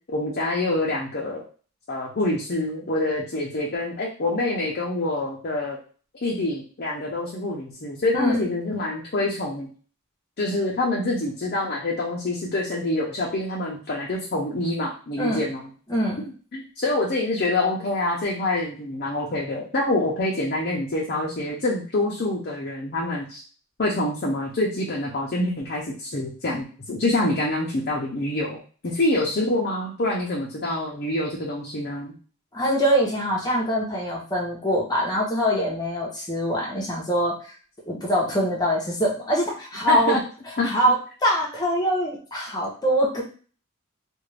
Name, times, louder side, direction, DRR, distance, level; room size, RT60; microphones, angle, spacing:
voice 1, 0.1-1.4 1.9-5.8 6.2-9.7 10.4-15.6 16.5-23.4 23.8-32.1 39.9-40.2 40.6-40.7, left 2 dB, 50° left, -4 dB, 0.6 m, -26 dB
voice 2, 15.9-16.2 32.5-37.3 37.9-40.2 40.6-41.0 41.2-43.2, equal, 20° left, -3 dB, 0.9 m, -23 dB
2.5 x 2.5 x 3.2 m, 0.39 s
head